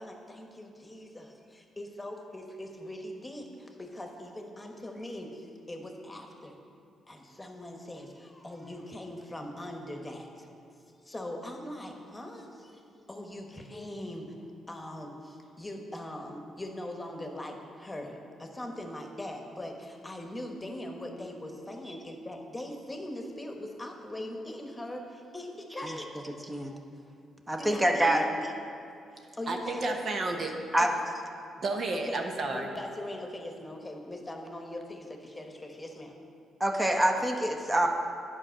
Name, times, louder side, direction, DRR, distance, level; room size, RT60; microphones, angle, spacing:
voice 1, 0.0-6.6 7.1-10.5 10.9-12.8 13.1-14.4 14.7-26.1 27.6-28.3 29.4-30.0 30.8-30.9 32.1-32.2 32.5-36.1, left 1 dB, 15° left, 2 dB, 1.2 m, -41 dB
voice 2, 27.5-28.3 30.7-30.9 36.6-37.9, right 1 dB, 15° right, 3 dB, 0.9 m, -25 dB
voice 3, 29.5-30.5 31.6-32.7, right 3 dB, 55° right, 3 dB, 1.0 m, -31 dB
9.8 x 4.9 x 6.4 m, 2.6 s
cardioid pair, 70°, 0 cm